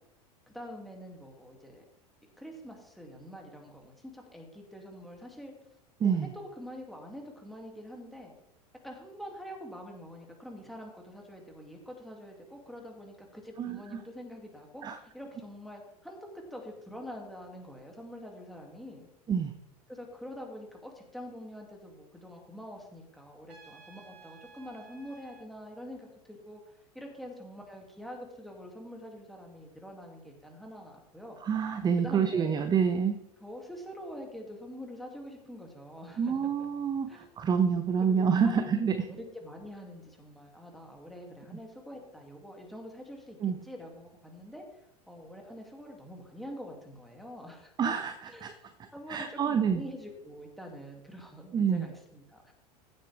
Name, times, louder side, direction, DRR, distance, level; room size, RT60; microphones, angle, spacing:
voice 1, 0.5-1.8 2.4-5.5 6.0-6.3 6.6-8.3 8.8-19.1 19.9-31.4 32.0-32.6 33.4-36.7 37.1-37.3 38.0-38.6 39.1-44.6 45.1-47.7 48.2-48.6 48.9-52.5, equal, ahead, 0 dB, 2.7 m, -45 dB
Trumpet, 23.5-25.5, right 6 dB, 75° right, 3.9 m, -54 dB
voice 2, 31.4-33.2 36.2-38.9 43.4-43.6 47.8-48.5 49.1-49.8 51.5-51.9, right 6 dB, 20° right, 10 dB, 0.7 m, -27 dB
15.0 x 8.0 x 3.6 m, 0.82 s
figure-of-eight pair, 85°, 20 cm